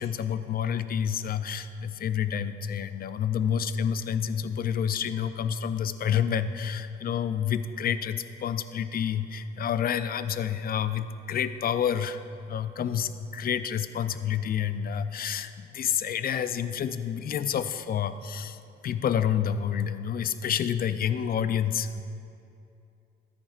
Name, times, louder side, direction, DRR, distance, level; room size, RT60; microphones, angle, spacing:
voice 1, 0.0-12.2 12.5-22.0, left 8 dB, 50° left, 12 dB, 0.5 m, -29 dB
13.5 x 9.9 x 2.5 m, 2.6 s
cardioid pair, 90°, 20 cm